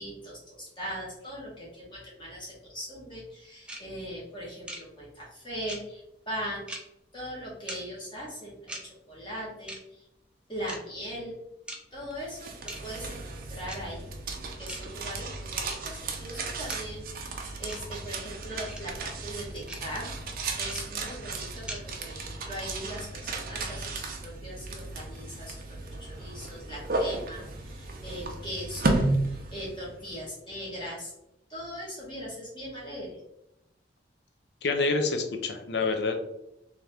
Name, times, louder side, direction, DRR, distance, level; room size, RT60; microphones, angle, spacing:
voice 1, 0.0-6.7 7.1-10.0 10.5-11.3 11.9-20.1 20.6-29.0 29.2-31.1 31.5-33.2, equal, 25° left, -6 dB, 1.2 m, -40 dB
sound 1, 3.7-3.8 4.7-4.8 5.7-5.8 6.7-6.8 7.7-7.8 8.7-8.8 9.7-9.8 10.7-10.8 11.7-11.8 12.7-12.8 13.7-13.8 14.7-14.8 15.7-15.8 16.7-16.8 17.7-17.8 18.7-18.8 19.7-19.8 20.7-20.8 21.7-21.8, right 1 dB, 5° right, 0.5 m, -38 dB
sound 2, 12.1-30.1, right 2 dB, 50° right, 0.6 m, -34 dB
voice 2, 34.6-36.1, left 3 dB, 65° left, 5 dB, 0.5 m, -27 dB
3.5 x 2.8 x 3.4 m, 0.85 s
head